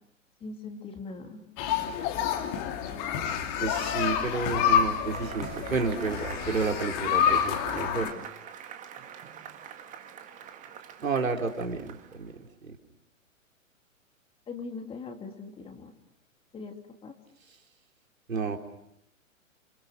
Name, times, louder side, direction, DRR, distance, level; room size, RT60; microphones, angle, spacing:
voice 1, 0.4-1.4 7.9-8.1 14.5-15.9 16.5-16.8 17.0-17.1, left 4 dB, 15° left, 4 dB, 2.8 m, -40 dB
sound 1, 1.6-8.1, left 8 dB, 30° left, 2.8 m, -28 dB
voice 2, 3.6-8.1 11.0-12.3 12.6-12.8 18.3-18.6, right 4 dB, 75° right, 3 dB, 3.9 m, -31 dB
Cheering / Applause / Crowd, 5.1-12.3, right 8 dB, 20° right, 2.0 m, -44 dB
28.0 x 28.0 x 6.3 m, 0.75 s
figure-of-eight pair, 120°, 40 cm